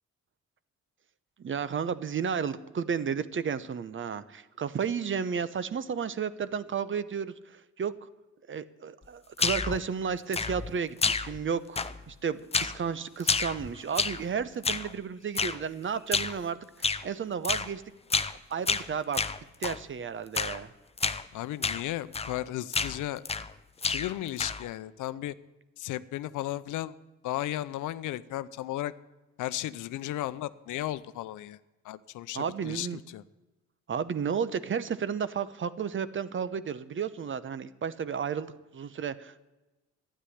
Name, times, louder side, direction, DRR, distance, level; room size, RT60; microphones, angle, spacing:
voice 1, 1.4-8.1 8.5-17.8 18.5-19.2 19.6-20.7 32.3-33.0 33.9-39.4, right 7 dB, 40° right, 15 dB, 0.9 m, -33 dB
sound 1, 9.4-9.8 10.3-10.7 11.0-11.5 11.8-12.1 12.5-12.8 13.2-14.3 14.6-14.9 15.4-15.6 16.1-16.4 16.8-17.1 17.4-17.7 18.1-18.4 18.7-19.8 20.3-20.6 21.0-21.2 21.6-21.8 22.1-22.4 22.7-23.5 23.8-24.7, left 4 dB, 20° left, 0.7 m, -30 dB
voice 2, 21.3-23.2 23.9-25.3 25.8-26.9 27.2-28.9 29.4-31.6 31.8-33.2, left 14 dB, 80° left, 16 dB, 0.7 m, -35 dB
12.5 x 10.0 x 9.9 m, 1.1 s
cardioid pair, 90°, 30 cm